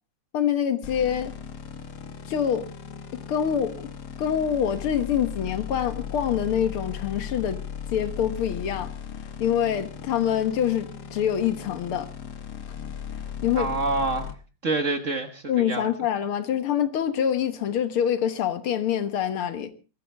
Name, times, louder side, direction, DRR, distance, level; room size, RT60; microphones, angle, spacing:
voice 1, 0.3-1.3 2.3-2.7 3.3-3.9 4.2-7.6 7.9-8.9 9.4-12.1 13.4-13.7 15.5-19.7, left 9 dB, 75° left, 2.1 m, -25 dB
sound 1, 0.8-14.3, left 8 dB, 50° left, 1.6 m, -37 dB
voice 2, 13.5-14.3 14.6-15.9, right 3 dB, 40° right, 1.5 m, -27 dB
22.5 x 13.5 x 3.4 m
omnidirectional pair, 2.4 m